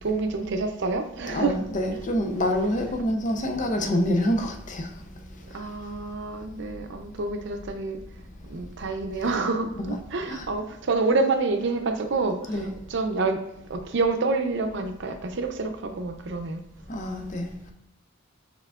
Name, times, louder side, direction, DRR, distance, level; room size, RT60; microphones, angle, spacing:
voice 1, 0.0-1.6 5.5-8.0 8.5-12.5 12.9-13.4 13.7-16.6, right 3 dB, 65° right, 0.6 m, -27 dB
voice 2, 1.3-5.7 9.8-10.5 12.5-12.8 16.9-17.7, left 1 dB, 40° left, 0.6 m, -27 dB
5.6 x 3.7 x 2.4 m
head